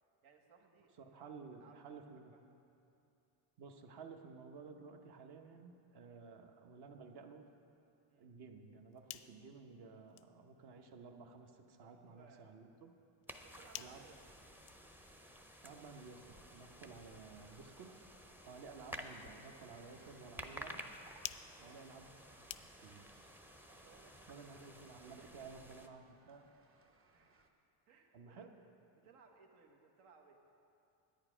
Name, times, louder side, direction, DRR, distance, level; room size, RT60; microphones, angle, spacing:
voice 1, 0.2-1.3 1.6-2.4 6.1-6.2 8.1-8.2 11.8-12.5 13.4-14.2 18.4-18.6 21.5-21.8 23.6-25.7 27.1-27.4 27.9-28.5 28.9-30.4, right 5 dB, 85° right, 3 dB, 1.4 m, -65 dB
voice 2, 1.0-2.3 3.6-7.4 8.2-12.9 13.8-14.1 15.6-18.0 18.4-20.8 21.6-22.4 22.8-23.3 24.3-26.5 28.1-28.5, right 4 dB, 55° right, 5 dB, 1.0 m, -54 dB
sound 1, 8.7-23.1, left 15 dB, 85° left, 0.6 m, -56 dB
sound 2, 13.3-25.9, equal, 5° right, 0.4 m, -53 dB
sound 3, 18.9-27.5, right 3 dB, 25° right, 0.8 m, -71 dB
10.5 x 9.2 x 5.0 m, 2.7 s
cardioid pair, 110°, 48 cm